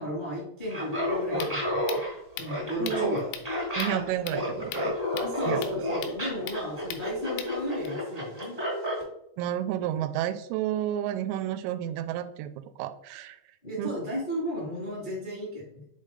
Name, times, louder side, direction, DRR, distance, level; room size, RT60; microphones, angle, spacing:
voice 1, 0.0-2.0 2.4-3.3 5.2-8.5 13.6-15.9, equal, 55° left, -6 dB, 0.5 m, -34 dB
Laughter, 0.7-9.0, left 1 dB, 50° right, 0.4 m, -31 dB
sound 1, 1.0-7.9, left 9 dB, 80° left, 2.6 m, -42 dB
voice 2, 2.8-3.2 3.8-5.9 9.4-12.5 12.8-13.4 13.8-13.9, right 11 dB, 90° right, 10 dB, 3.2 m, -31 dB
6.9 x 4.2 x 3.7 m, 0.77 s
omnidirectional pair, 5.7 m